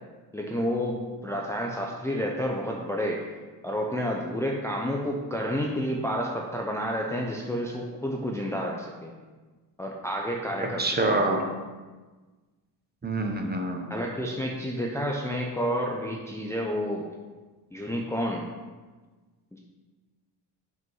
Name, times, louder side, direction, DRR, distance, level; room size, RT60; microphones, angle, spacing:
voice 1, 0.3-3.3 3.6-9.1 9.8-11.2 13.9-17.0 17.7-18.5 19.5-19.6, equal, 5° left, -1 dB, 0.6 m, -30 dB
voice 2, 10.8-11.4 13.0-13.9, right 2 dB, 20° right, 2 dB, 0.9 m, -26 dB
6.1 x 5.5 x 5.4 m, 1.3 s
cardioid pair, 135°, 46 cm